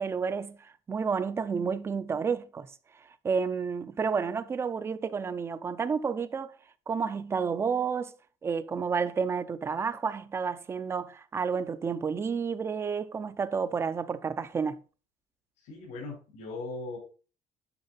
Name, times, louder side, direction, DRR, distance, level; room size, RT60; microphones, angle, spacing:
voice 1, 0.0-2.7 3.2-6.5 6.9-8.1 8.4-14.8, right 5 dB, 20° right, 0.5 m, -30 dB
voice 2, 15.6-17.0, left 3 dB, 80° left, 4.1 m, -39 dB
9.7 x 6.5 x 4.1 m
cardioid pair, 170°, 13 cm